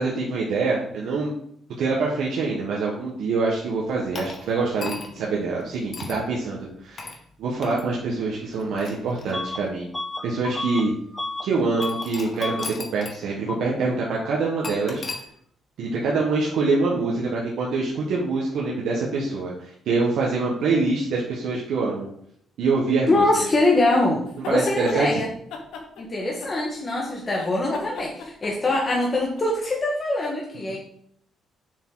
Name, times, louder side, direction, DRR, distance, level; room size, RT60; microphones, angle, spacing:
voice 1, 0.0-1.3 1.8-7.1 7.4-9.9 10.2-10.9 11.4-12.6 12.9-15.0 15.8-22.1 22.6-23.2 24.5-25.2, right 3 dB, 80° right, -3 dB, 1.6 m, -25 dB
sound 1, 4.1-5.3 5.9-6.2 7.0-7.2 7.6-7.8 8.5-9.7 10.4-10.5 11.8-13.2 13.5-13.6 14.6-15.2, left 4 dB, 45° left, 1.4 m, -36 dB
Bus / Alarm, 9.3-9.6 9.9-11.5 11.8-12.1 12.4-12.7, left 2 dB, 10° left, 0.4 m, -31 dB
voice 2, 23.1-25.3 26.0-30.8, left 2 dB, 30° left, -3 dB, 1.7 m, -23 dB
sound 2, 24.3-25.0 25.5-26.9 27.2-29.4, left 5 dB, 85° left, 1.3 m, -37 dB
6.9 x 6.7 x 4.0 m, 0.66 s
cardioid pair, 90°, 0 cm